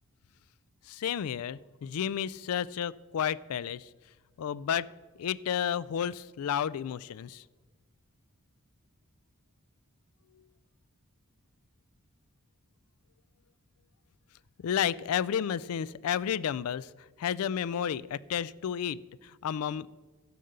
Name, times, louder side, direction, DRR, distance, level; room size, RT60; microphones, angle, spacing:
voice 1, 0.8-3.9 4.4-4.9 5.2-7.4 10.3-10.5 14.6-20.0, left 8 dB, 75° left, 20 dB, 0.3 m, -32 dB
12.5 x 6.6 x 6.7 m, 1.3 s
head